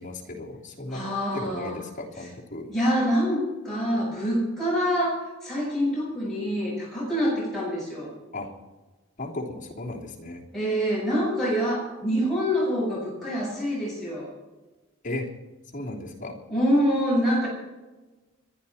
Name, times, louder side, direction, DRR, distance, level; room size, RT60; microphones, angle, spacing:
voice 1, 0.0-2.7 8.3-8.5 9.2-10.4 15.0-15.3 15.7-16.4, left 2 dB, 35° left, -3 dB, 3.1 m, -35 dB
voice 2, 0.9-1.8 2.7-8.1 10.5-14.3 16.5-17.5, equal, ahead, -8 dB, 7.3 m, -26 dB
27.0 x 11.0 x 4.3 m, 1.2 s
head